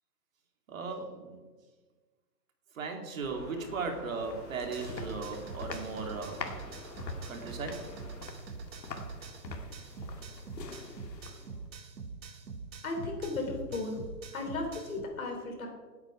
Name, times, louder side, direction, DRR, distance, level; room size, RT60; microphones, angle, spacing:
voice 1, 0.7-1.4 2.7-6.5 7.3-7.9, right 4 dB, 55° right, 3 dB, 2.4 m, -37 dB
sound 1, 3.2-8.2, left 1 dB, 10° left, 0.9 m, -50 dB
sound 2, 3.9-11.7, left 4 dB, 90° left, 2.3 m, -44 dB
sound 3, 4.6-15.0, right 4 dB, 90° right, 2.0 m, -45 dB
voice 2, 12.8-14.0 14.3-15.7, left 3 dB, 55° left, 2 dB, 4.0 m, -35 dB
17.0 x 8.8 x 4.9 m, 1.3 s
hypercardioid pair, 170°, 49 cm